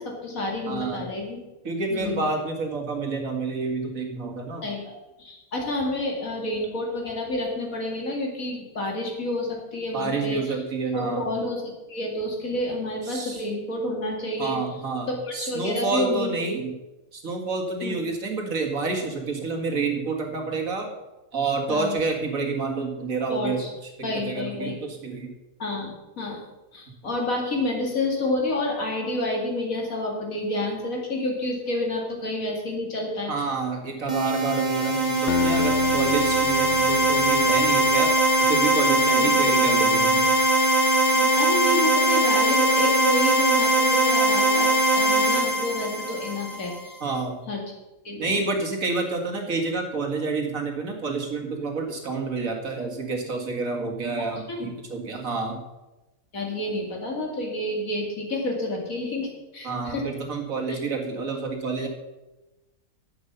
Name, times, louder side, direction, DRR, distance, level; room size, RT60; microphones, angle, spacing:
voice 1, 0.0-1.4 1.9-2.3 4.6-10.6 10.9-14.6 15.1-16.6 17.8-18.0 21.7-22.0 23.3-23.7 24.0-24.8 25.6-26.4 26.7-33.3 39.1-39.4 41.1-47.0 47.5-47.6 48.0-48.4 54.2-54.7 56.3-60.1 60.7-60.8, left 1 dB, 65° left, 0 dB, 2.9 m, -29 dB
voice 2, 0.7-1.0 1.6-4.6 9.9-11.2 13.1-13.5 14.4-15.1 15.3-16.7 17.1-20.9 21.3-23.6 24.0-25.3 33.3-38.1 38.4-40.3 47.0-47.4 48.2-55.6 59.6-61.9, right 4 dB, 65° right, 2 dB, 2.2 m, -28 dB
sound 1, 34.1-46.8, right 1 dB, 30° right, 1.8 m, -21 dB
Acoustic guitar, 35.3-38.3, left 10 dB, 80° left, 0.5 m, -31 dB
11.0 x 8.0 x 6.7 m, 1.0 s
omnidirectional pair, 1.6 m